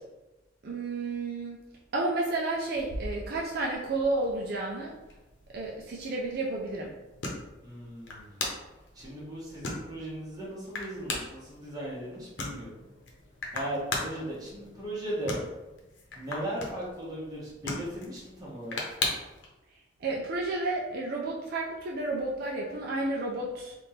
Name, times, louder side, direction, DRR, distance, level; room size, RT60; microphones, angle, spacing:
voice 1, 0.6-1.6 1.9-4.9 5.5-6.9 20.0-23.8, right 2 dB, 55° right, -2 dB, 0.5 m, -31 dB
sound 1, 2.7-19.5, left 2 dB, 70° left, 0.9 m, -39 dB
voice 2, 7.6-8.5 8.9-12.8 13.5-15.4 16.1-18.8, right 1 dB, 20° right, -6 dB, 1.3 m, -37 dB
3.6 x 2.5 x 4.2 m, 1.1 s
head